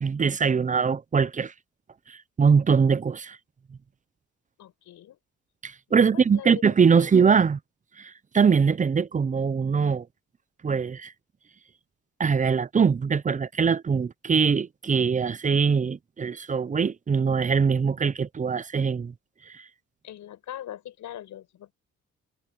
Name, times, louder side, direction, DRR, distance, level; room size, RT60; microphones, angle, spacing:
voice 1, 0.0-1.5 2.1-3.4 5.6-7.6 8.0-10.1 10.6-11.1 12.2-19.1 19.5-19.6, right 6 dB, 25° right, 0.6 m, -22 dB
voice 2, 4.6-5.2 5.9-6.5 6.9-7.1 20.0-21.7, left 12 dB, 75° left, 5.6 m, -41 dB
cardioid pair, 90°, 30 cm